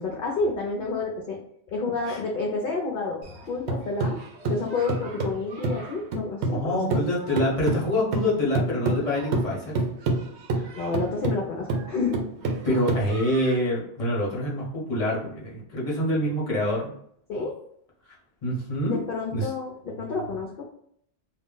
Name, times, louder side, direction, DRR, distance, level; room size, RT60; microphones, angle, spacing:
voice 1, 0.0-1.4 1.7-3.2 3.5-4.2 4.5-6.9 10.8-12.2 17.3-17.5 18.8-20.7, left 3 dB, 60° left, -1 dB, 0.7 m, -29 dB
sound 1, 3.2-6.6 6.9-13.6, right 2 dB, 80° right, 0.9 m, -28 dB
voice 2, 6.5-9.7 10.6-10.7 12.6-16.9 18.4-19.0 19.3-19.5, left 1 dB, 35° left, -4 dB, 1.0 m, -26 dB
2.3 x 2.1 x 3.7 m, 0.66 s
omnidirectional pair, 1.1 m